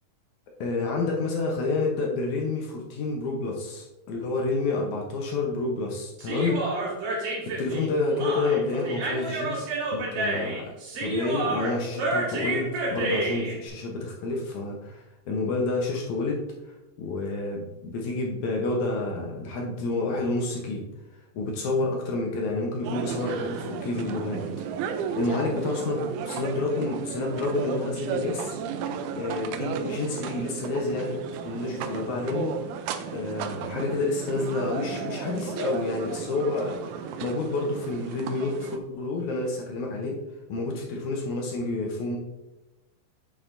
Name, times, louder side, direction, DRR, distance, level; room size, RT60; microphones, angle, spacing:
voice 1, 0.6-6.6 7.5-9.6 9.9-10.6 11.0-16.4 17.0-20.9 21.3-24.5 25.2-28.5 29.1-32.5 33.1-40.2 40.5-42.2, left 3 dB, 70° left, 0 dB, 2.0 m, -29 dB
Human voice, 6.2-13.5, right 2 dB, 70° right, 3.4 m, -29 dB
sound 1, 22.8-38.8, right 7 dB, 85° right, 1.7 m, -34 dB
8.7 x 6.5 x 2.6 m, 1.0 s
omnidirectional pair, 4.0 m